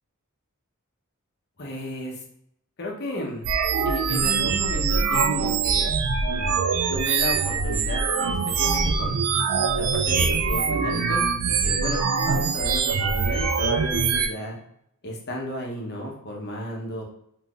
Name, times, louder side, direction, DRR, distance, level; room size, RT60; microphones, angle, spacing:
voice 1, 1.6-2.2 2.8-3.4 3.8-5.9 6.3-6.6 6.9-9.2 9.7-11.2 11.6-14.6 15.0-17.0, left 1 dB, 50° left, -1 dB, 0.8 m, -33 dB
sound 1, 3.4-14.3, right 5 dB, 75° right, 0.4 m, -23 dB
3.5 x 2.6 x 2.3 m, 0.74 s
head